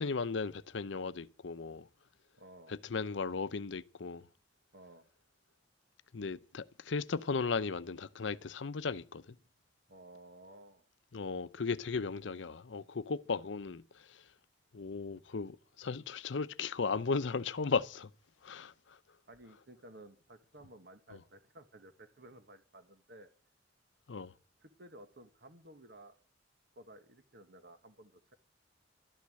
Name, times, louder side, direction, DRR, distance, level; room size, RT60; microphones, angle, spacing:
voice 1, 0.0-1.9 2.7-4.3 6.1-9.4 11.1-14.3 14.7-18.1 18.4-19.0 21.1-21.2 24.1-24.3, left 4 dB, 75° left, 0.6 m, -36 dB
voice 2, 2.4-2.7 4.7-5.1 9.9-10.8 19.3-23.3 24.6-26.1 26.7-28.3, right 1 dB, 60° right, 1.4 m, -55 dB
13.0 x 11.5 x 7.5 m
head